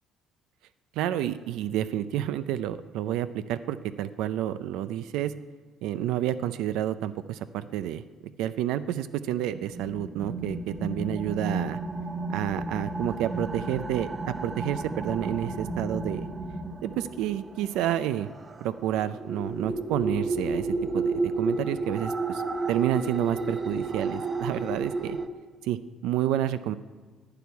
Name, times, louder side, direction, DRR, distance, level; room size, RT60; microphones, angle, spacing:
voice 1, 1.0-5.3 5.8-8.0 8.4-11.8 12.3-16.3 16.8-18.3 18.6-22.4 22.7-25.2 25.6-26.7, right 12 dB, 85° right, 12 dB, 0.5 m, -29 dB
sound 1, 9.5-25.3, right 3 dB, 20° right, 0.8 m, -32 dB
11.5 x 10.0 x 9.4 m, 1.4 s
cardioid pair, 165°, 0 cm